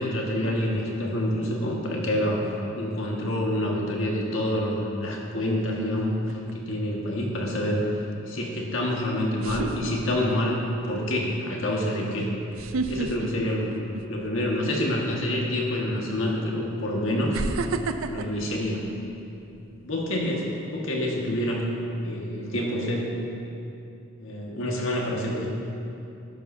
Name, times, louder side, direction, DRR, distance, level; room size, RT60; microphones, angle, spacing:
voice 1, 0.0-12.3 12.9-13.8 14.1-17.4 18.1-18.8 19.8-21.6 22.0-23.1 24.2-25.5, left 1 dB, 70° left, -2 dB, 1.7 m, -27 dB
sound 1, 6.3-6.7 8.6-8.7 9.4-10.5 11.0-11.2 12.5-14.4 14.7-15.0 16.0-16.1 17.3-19.6 20.0-20.3, right 3 dB, 75° right, 0.5 m, -31 dB
12.5 x 11.5 x 2.7 m, 2.7 s
head